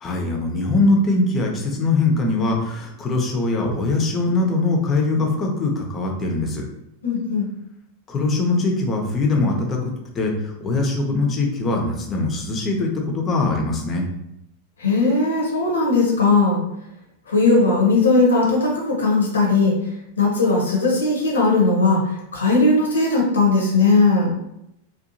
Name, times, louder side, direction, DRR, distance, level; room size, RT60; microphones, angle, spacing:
voice 1, 0.0-6.6 8.1-9.8 10.2-12.9 13.1-14.1, left 3 dB, 25° left, 1 dB, 0.6 m, -22 dB
voice 2, 7.0-7.5 14.8-16.6 17.3-19.7 20.2-24.3, left 3 dB, 70° left, -2 dB, 0.7 m, -18 dB
2.7 x 2.4 x 2.6 m, 0.81 s
figure-of-eight pair, 90°, 0 cm